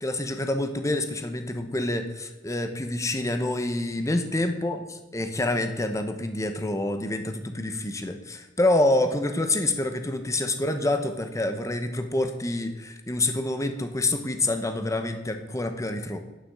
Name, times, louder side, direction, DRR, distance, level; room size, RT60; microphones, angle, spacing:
voice 1, 0.0-4.8 5.1-16.2, left 2 dB, 15° left, 7 dB, 1.0 m, -27 dB
10.0 x 6.0 x 7.5 m, 1.1 s
head